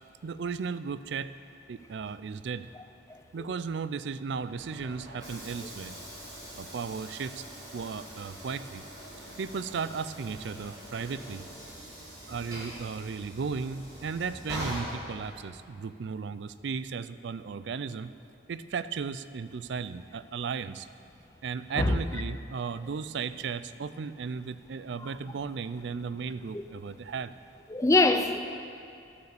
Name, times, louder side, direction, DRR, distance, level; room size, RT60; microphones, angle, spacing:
voice 1, 0.2-1.3 1.7-2.7 3.3-6.0 6.6-7.5 7.7-8.8 9.4-11.4 12.3-18.1 18.5-20.9 21.4-27.3, right 5 dB, 70° right, 0.4 m, -35 dB
Train / Sliding door, 4.3-15.7, equal, 20° right, 2.5 m, -43 dB
voice 2, 27.7-28.4, left 2 dB, 15° left, 0.5 m, -24 dB
11.0 x 7.9 x 6.9 m
head